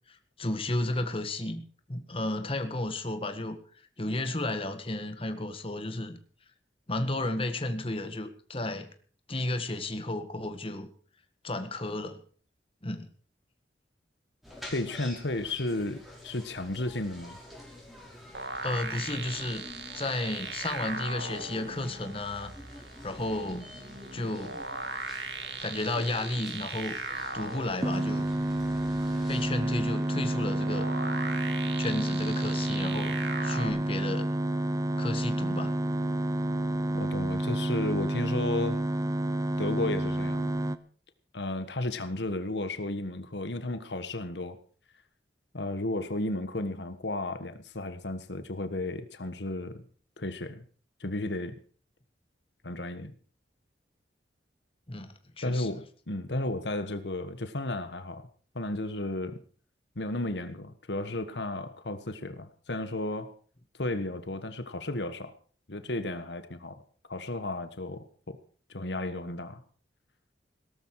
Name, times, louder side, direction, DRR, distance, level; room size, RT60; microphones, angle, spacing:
voice 1, 0.1-3.6 4.0-6.2 6.9-8.9 9.3-10.9 11.4-12.2 12.8-13.1 18.6-19.6 19.9-22.5 23.0-23.7 24.1-24.6 25.6-27.0 27.3-28.3 29.3-30.9 31.8-33.1 33.4-34.3 35.0-35.7 54.9-55.1 55.4-55.8, left 2 dB, 30° left, 8 dB, 1.7 m, -33 dB
sound 1, 14.4-29.5, left 1 dB, ahead, 5.3 m, -49 dB
voice 2, 14.7-17.4 36.9-38.8 39.6-40.5 41.3-44.6 45.5-49.8 50.2-50.6 51.0-51.6 52.6-53.1 55.4-58.2 58.5-59.4 59.9-63.3 63.8-65.3 65.7-66.7 67.1-68.4 68.7-69.6, left 2 dB, 75° left, 10 dB, 1.5 m, -33 dB
sound 2, 18.3-33.7, right 3 dB, 75° right, 2.8 m, -39 dB
sound 3, 27.8-40.8, right 1 dB, 20° right, 0.8 m, -29 dB
18.0 x 13.5 x 4.8 m, 0.43 s
head